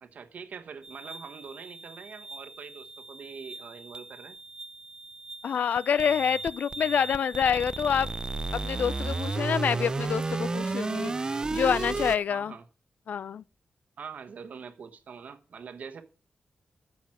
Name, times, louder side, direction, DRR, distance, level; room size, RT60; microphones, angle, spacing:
voice 1, 0.0-4.4 12.3-12.6 14.0-16.0, right 6 dB, 70° right, 1.3 m, -44 dB
sound 1, 0.8-12.2, right 3 dB, 30° right, 0.5 m, -34 dB
voice 2, 5.4-8.1 8.5-11.1 11.5-12.5 13.1-13.4, left 7 dB, 75° left, 0.4 m, -27 dB
9.0 x 7.2 x 6.0 m
wide cardioid pair, 105°, 3 cm